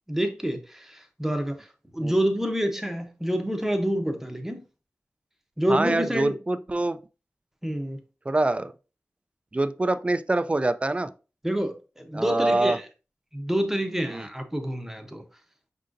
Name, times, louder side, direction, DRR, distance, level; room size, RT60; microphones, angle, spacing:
voice 1, 0.1-1.7 1.9-4.6 5.6-6.4 7.6-8.0 11.4-12.8 13.3-15.2, equal, 5° right, 0.7 m, -27 dB
voice 2, 5.7-7.0 8.3-8.7 9.5-11.1 12.1-12.8 14.1-14.3, right 2 dB, 25° right, 0.3 m, -25 dB
5.3 x 3.8 x 2.5 m
wide cardioid pair, 75°, 5 cm